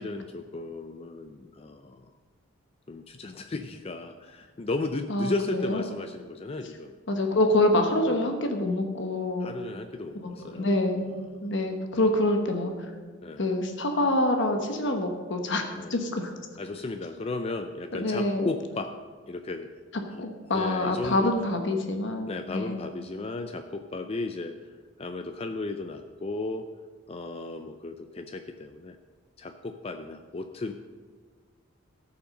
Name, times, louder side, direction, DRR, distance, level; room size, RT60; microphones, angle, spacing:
voice 1, 0.0-2.1 2.9-6.9 9.4-10.7 11.4-11.5 13.2-13.5 15.7-15.9 16.6-19.0 19.3-19.7 20.2-21.3 22.3-24.6 25.0-26.7 27.1-29.0 29.4-30.7, left 3 dB, 30° left, 7 dB, 0.4 m, -35 dB
voice 2, 5.1-5.8 7.1-9.5 10.2-11.0 11.4-12.7 13.4-16.3 17.9-18.5 20.2-22.8, left 1 dB, 65° left, 4 dB, 1.1 m, -26 dB
14.0 x 5.8 x 6.5 m, 1.5 s
head